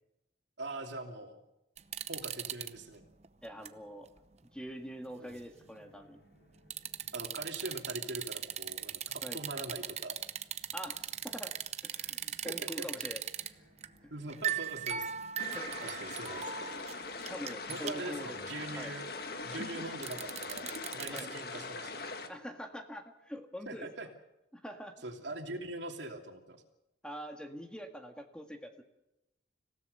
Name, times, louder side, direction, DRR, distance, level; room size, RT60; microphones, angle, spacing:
voice 1, 0.6-1.4 2.1-3.0 5.2-5.4 7.1-10.1 12.4-12.9 14.1-15.1 15.8-16.5 17.7-19.1 19.4-22.0 23.7-24.1 25.0-26.6, right 2 dB, 70° right, 4 dB, 2.9 m, -42 dB
sound 1, 1.8-2.7 3.2-3.7 4.2-4.3 6.7-13.5 13.8-13.9 14.3-18.1 20.0-21.2, right 9 dB, 35° right, 0.8 m, -38 dB
voice 2, 3.4-4.1 4.4-6.2 9.2-9.4 10.7-11.5 11.8-13.2 15.5-15.9 17.3-18.4 18.7-18.9 21.1-21.3 22.3-23.9 24.6-24.9 27.0-28.8, equal, 5° left, 5 dB, 1.8 m, -44 dB
sound 2, 5.5-22.5, right 1 dB, 80° left, 5.4 m, -61 dB
sound 3, 15.4-22.3, left 3 dB, 55° left, 1.7 m, -42 dB
26.5 x 17.0 x 6.8 m, 0.91 s
head